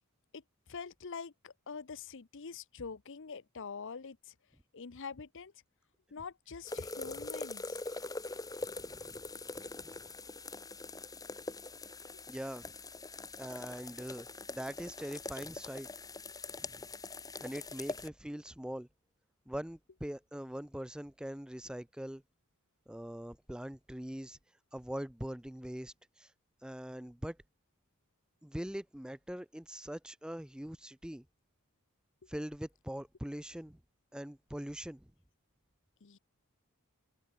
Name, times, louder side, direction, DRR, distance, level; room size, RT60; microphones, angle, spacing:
voice 1, 0.3-4.3 4.7-5.5 6.1-7.8 36.0-36.2, left 5 dB, 60° left, 0.8 m, -45 dB
sound 1, 6.7-18.1, left 3 dB, 15° left, 1.7 m, -43 dB
voice 2, 8.6-9.2 9.6-10.0 12.3-12.8 13.4-15.9 16.6-16.8 17.4-18.9 19.5-22.2 22.9-24.4 24.7-26.3 26.6-27.4 28.4-31.2 32.3-33.8 34.1-35.1, equal, 5° right, 0.5 m, -42 dB
head